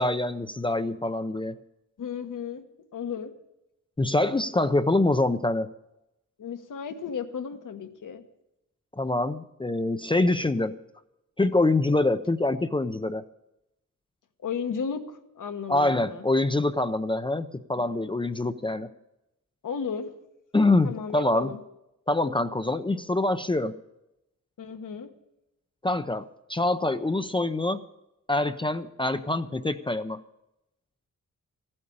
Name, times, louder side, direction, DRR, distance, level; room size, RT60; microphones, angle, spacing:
voice 1, 0.0-1.6 4.0-5.7 9.0-10.8 11.4-13.2 15.7-18.9 20.5-21.5 22.1-23.8 25.8-27.8 28.3-30.2, left 2 dB, 15° left, 9 dB, 0.5 m, -25 dB
voice 2, 2.0-2.6 2.9-3.3 6.4-8.2 14.4-16.3 17.8-18.2 19.6-20.1 20.8-21.6 24.6-25.1, left 6 dB, 75° left, 6 dB, 1.4 m, -34 dB
15.0 x 8.7 x 8.6 m, 0.88 s
wide cardioid pair, 120°, 32 cm